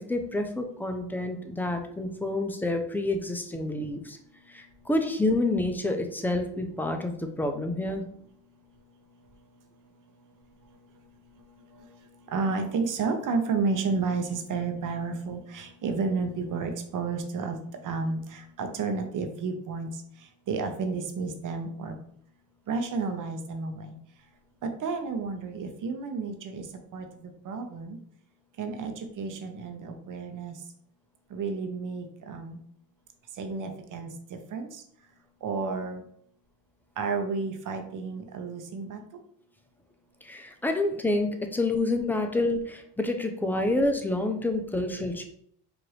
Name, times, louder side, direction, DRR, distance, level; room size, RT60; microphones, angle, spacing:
voice 1, 0.0-4.2 4.5-8.0 40.2-45.3, left 2 dB, 5° left, 5 dB, 0.4 m, -28 dB
voice 2, 12.3-17.6 17.8-19.9 20.5-21.9 22.7-24.0 24.6-26.7 26.9-28.0 28.6-30.6 31.3-32.6 33.4-34.8 35.4-36.0 37.0-39.0, right 4 dB, 45° right, 5 dB, 0.8 m, -31 dB
4.7 x 2.6 x 3.1 m, 0.65 s
supercardioid pair, 100°, 46 cm